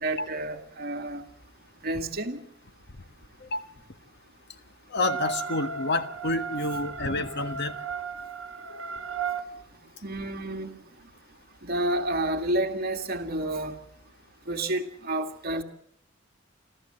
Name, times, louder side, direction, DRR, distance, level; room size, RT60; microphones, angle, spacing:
voice 1, 0.0-1.2 1.8-2.4 10.0-10.7 11.6-13.8 14.5-15.6, right 1 dB, 50° right, 4 dB, 2.1 m, -30 dB
voice 2, 4.9-7.7, left 2 dB, 60° left, 10 dB, 1.4 m, -28 dB
sound 1, 5.0-9.5, right 6 dB, 85° right, 1.2 m, -35 dB
26.5 x 14.5 x 7.7 m, 0.65 s
head